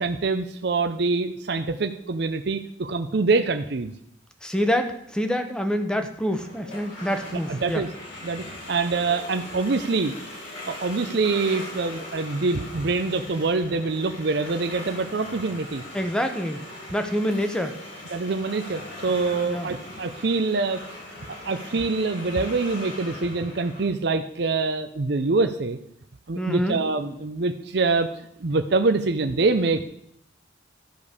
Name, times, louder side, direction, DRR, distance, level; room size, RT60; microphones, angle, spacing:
voice 1, 0.0-3.9 7.5-7.9 8.2-10.2 10.7-15.8 18.1-20.8 21.3-25.8 26.3-28.1 28.4-29.8, right 3 dB, 60° right, 8 dB, 0.6 m, -25 dB
voice 2, 4.4-7.8 15.9-16.6 16.9-17.8 19.5-19.7 26.3-26.8, equal, 5° left, 7 dB, 0.9 m, -26 dB
sound 1, 6.3-23.9, left 1 dB, 80° left, 4.9 m, -40 dB
12.0 x 5.3 x 6.6 m, 0.73 s
head